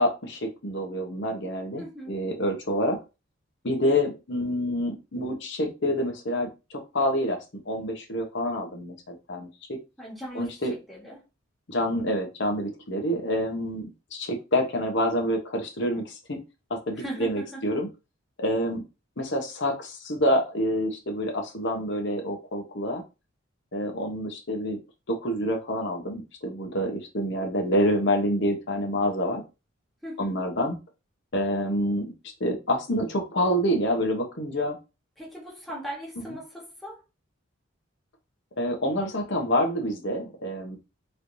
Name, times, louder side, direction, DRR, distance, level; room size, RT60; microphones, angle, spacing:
voice 1, 0.0-3.0 3.6-7.4 7.7-9.8 10.3-10.7 11.7-13.9 14.1-16.4 16.7-17.9 18.4-18.8 19.2-23.0 23.7-24.8 25.1-29.4 30.2-30.8 31.3-32.0 32.4-34.8 38.6-40.8, equal, 60° left, 0.9 m, -27 dB
voice 2, 1.8-2.1 10.0-11.2 16.9-17.6 30.0-30.4 35.2-37.0, right 1 dB, ahead, 1.4 m, -39 dB
3.2 x 3.1 x 2.6 m
head